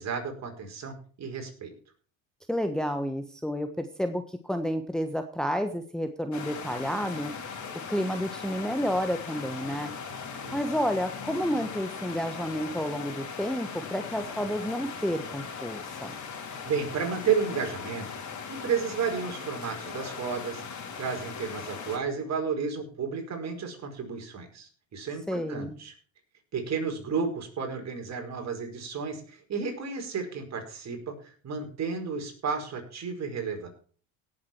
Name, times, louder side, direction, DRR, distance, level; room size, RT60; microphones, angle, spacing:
voice 1, 0.0-1.7 10.4-10.6 16.6-18.1 18.5-25.9 26.5-33.7, right 6 dB, 45° right, 3 dB, 4.9 m, -32 dB
voice 2, 2.5-7.3 7.9-9.9 10.5-16.1 25.3-25.8, equal, ahead, 7 dB, 1.2 m, -30 dB
sound 1, 6.3-22.0, left 6 dB, 50° left, 4.0 m, -39 dB
17.5 x 7.7 x 4.5 m, 0.44 s
supercardioid pair, 80°, 38 cm